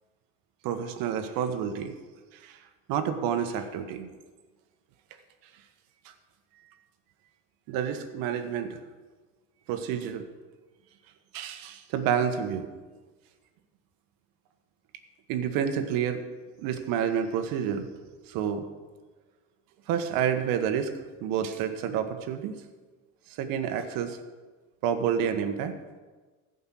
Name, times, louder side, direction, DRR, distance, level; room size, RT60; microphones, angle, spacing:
voice 1, 0.6-1.9 2.3-2.6 2.9-4.1 7.7-8.8 9.7-10.3 11.3-12.7 15.3-16.2 16.6-17.9 18.3-18.6 19.9-20.9 21.2-22.5 23.3-24.2 24.8-25.7, right 8 dB, 65° right, 8 dB, 1.4 m, -29 dB
15.0 x 5.5 x 7.6 m, 1.3 s
cardioid pair, 135°, 36 cm